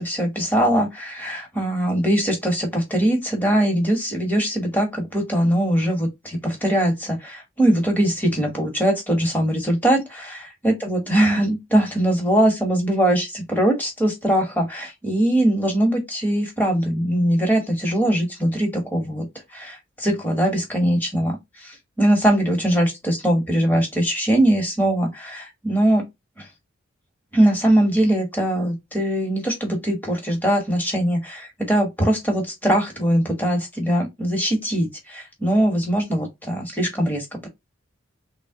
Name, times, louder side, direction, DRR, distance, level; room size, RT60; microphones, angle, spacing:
voice 1, 0.0-19.3 19.5-26.0 26.4-26.5 27.3-37.5, right 1 dB, 10° left, 1.5 m, -21 dB
3.7 x 2.5 x 3.6 m
head